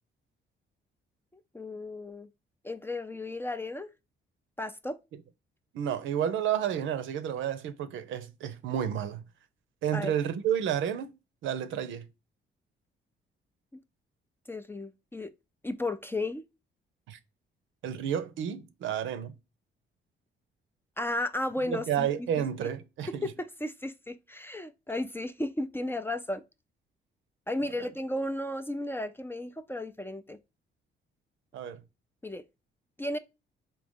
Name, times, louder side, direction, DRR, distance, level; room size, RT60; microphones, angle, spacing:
voice 1, 1.5-2.3 2.6-3.9 4.6-5.0 9.9-10.1 14.5-15.3 15.6-16.5 21.0-22.1 22.4-22.5 23.2-26.4 27.5-30.4 32.2-32.4 33.0-33.2, left 1 dB, 10° left, 0.4 m, -34 dB
voice 2, 5.7-9.2 9.8-11.1 11.4-12.1 17.1-17.2 17.8-19.4 21.6-23.3 27.8-27.9 31.5-31.8, right 9 dB, 80° right, 0.6 m, -31 dB
4.0 x 2.8 x 3.5 m
cardioid pair, 90°, 20 cm